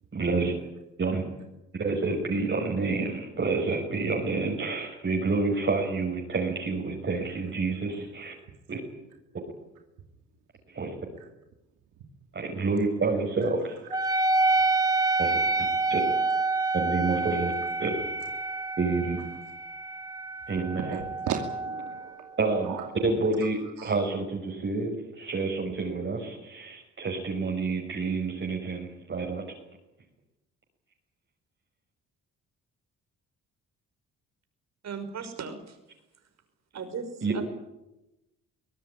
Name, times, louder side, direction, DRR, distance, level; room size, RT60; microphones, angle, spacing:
voice 1, 0.1-0.5 1.0-1.2 1.8-8.3 8.7-8.8 10.7-10.9 12.3-13.8 15.2-15.3 15.9-16.0 16.7-17.5 17.8-17.9 18.8-19.2 20.5-21.0 22.4-22.7 23.0-29.5 37.2-37.3, right 3 dB, 40° right, 5.6 m, -28 dB
Wind instrument woodwind instrument, 13.9-22.9, right 3 dB, 10° right, 1.4 m, -28 dB
voice 2, 20.8-22.3 22.6-22.9 23.8-23.9, right 7 dB, 85° right, 2.6 m, -36 dB
voice 3, 34.8-35.8 36.7-37.4, right 5 dB, 60° right, 5.6 m, -37 dB
23.5 x 18.0 x 9.9 m
cardioid pair, 90°, 30 cm